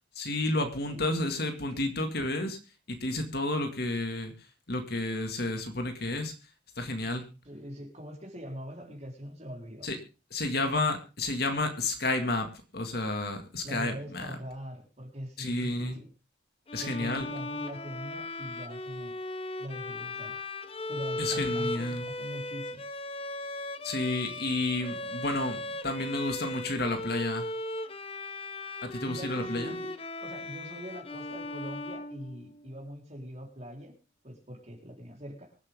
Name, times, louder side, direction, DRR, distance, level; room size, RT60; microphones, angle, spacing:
voice 1, 0.2-2.6 2.9-4.3 4.7-6.3 6.8-7.2 9.8-10.0 10.3-14.4 15.4-16.0 16.7-17.3 21.2-22.1 23.8-25.6 25.8-27.4 28.9-29.8, left 2 dB, 55° left, 6 dB, 2.1 m, -31 dB
voice 2, 0.8-1.9 7.4-9.9 13.6-16.1 16.8-19.1 19.6-20.4 20.9-22.8 29.0-29.9 30.2-33.9 34.2-35.6, equal, 35° right, 0 dB, 4.0 m, -42 dB
Bowed string instrument, 16.7-32.7, left 2 dB, 30° left, 0.8 m, -37 dB
24.5 x 8.1 x 3.6 m, 0.32 s
head